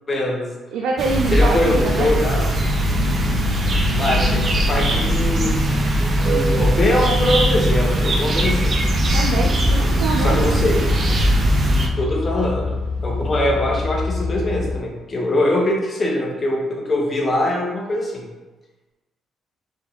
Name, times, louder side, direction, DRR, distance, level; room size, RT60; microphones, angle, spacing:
voice 1, 0.1-0.5 1.3-2.4 4.0-5.6 6.2-8.7 10.2-10.8 12.0-12.8 13.0-18.2, left 1 dB, 35° left, -1 dB, 1.1 m, -22 dB
voice 2, 0.7-2.1 9.1-10.6, right 3 dB, 85° right, 0 dB, 0.4 m, -24 dB
sound 1, 1.0-11.9, equal, 40° right, 0.7 m, -19 dB
sound 2, 8.4-14.8, left 4 dB, 80° left, 0.4 m, -26 dB
3.7 x 2.5 x 4.5 m, 1.2 s
cardioid pair, 90°, 0 cm